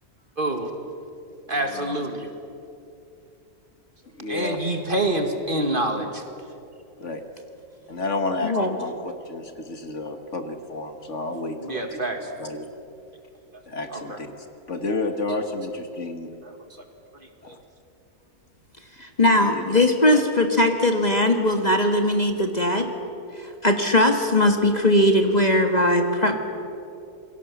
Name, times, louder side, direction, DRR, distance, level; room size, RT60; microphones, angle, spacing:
voice 1, 0.4-0.7 1.5-2.3 4.3-6.2 11.6-12.2 13.9-14.2 16.4-16.5 17.5-17.6, right 1 dB, 35° right, 5 dB, 2.1 m, -26 dB
voice 2, 1.5-2.0 4.2-4.6 7.0-7.2 7.9-12.0 12.4-12.7 13.7-14.3 14.7-16.3 17.4-17.6 19.4-19.7 20.1-20.2, left 2 dB, 50° left, 6 dB, 1.9 m, -31 dB
voice 3, 8.4-8.7 19.0-22.9 23.4-26.4, left 1 dB, 30° left, 5 dB, 1.7 m, -20 dB
28.0 x 22.5 x 7.3 m, 2.7 s
omnidirectional pair, 1.6 m